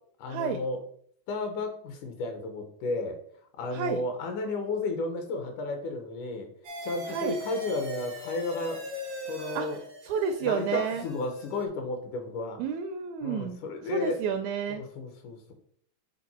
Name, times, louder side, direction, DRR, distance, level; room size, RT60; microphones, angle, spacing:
voice 1, 0.2-0.8 1.3-3.2 3.6-6.5 6.8-8.8 9.3-9.8 10.4-12.6 13.2-14.2 14.7-15.5, left 2 dB, 75° left, 5 dB, 2.5 m, -33 dB
sound 1, 6.6-11.7, equal, 60° right, 0.8 m, -40 dB
voice 2, 10.1-11.0 12.6-13.6 13.9-14.8, right 6 dB, 80° right, 6 dB, 1.6 m, -30 dB
7.6 x 3.9 x 4.2 m, 0.63 s
omnidirectional pair, 3.7 m